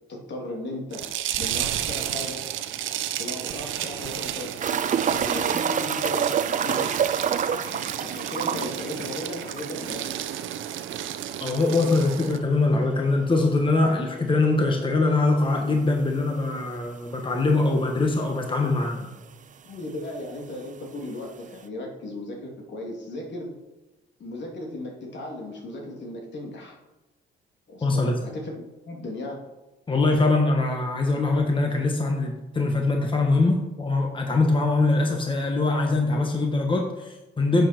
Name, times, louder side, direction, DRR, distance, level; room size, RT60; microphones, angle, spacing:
voice 1, 0.1-1.1 1.4-2.5 3.2-6.3 6.6-7.0 7.4-10.1 19.0-19.1 19.6-23.6 24.2-26.8 27.7-29.4, left 1 dB, 65° left, 0 dB, 2.9 m, -36 dB
sound 1, 0.9-12.4, right 11 dB, 85° right, 0.8 m, -32 dB
sound 2, 4.6-10.0 10.3-10.4 10.7-10.8 13.6-13.7 15.4-15.5 16.3-16.4 16.6-16.7 17.6-17.7 17.8-18.5 19.4-19.5, right 8 dB, 40° right, 0.5 m, -27 dB
voice 2, 11.4-19.0 27.8-28.1 29.9-37.7, left 3 dB, 25° left, 2 dB, 1.5 m, -23 dB
11.0 x 8.1 x 4.5 m, 1.0 s
cardioid pair, 90°, 20 cm